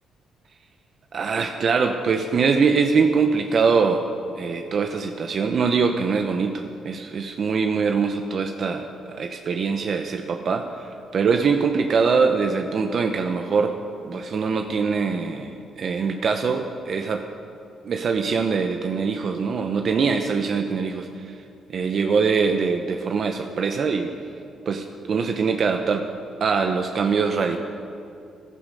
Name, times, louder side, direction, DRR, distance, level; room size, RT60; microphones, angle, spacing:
voice 1, 1.1-4.0 4.4-10.9 11.1-13.7 14.0-17.2 17.8-21.4 21.7-24.1 24.7-26.1 26.4-27.6, right 5 dB, 55° right, 5 dB, 0.7 m, -23 dB
14.5 x 12.0 x 5.3 m, 2.5 s
cardioid pair, 90°, 0 cm